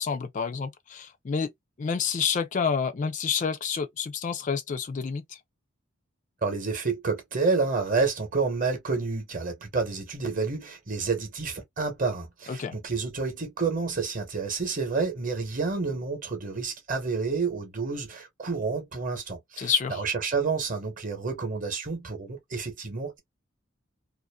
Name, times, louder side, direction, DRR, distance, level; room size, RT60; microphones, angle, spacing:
voice 1, 0.0-1.5 1.8-5.4 12.5-12.7 19.6-20.0, left 6 dB, 35° left, 0.3 m, -29 dB
voice 2, 6.4-23.2, right 4 dB, 40° right, 0.9 m, -29 dB
2.5 x 2.4 x 2.2 m
head